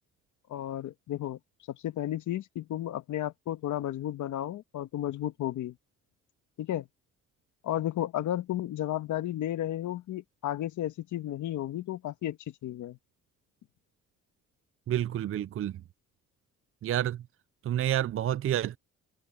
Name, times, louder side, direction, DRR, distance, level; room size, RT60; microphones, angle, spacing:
voice 1, 0.5-1.4 1.7-5.7 6.6-6.9 7.6-13.0, left 12 dB, 75° left, 1.5 m, -33 dB
voice 2, 14.9-15.7 16.8-17.2 17.6-18.8, right 11 dB, 45° right, 0.5 m, -29 dB
cardioid pair, 90°, 30 cm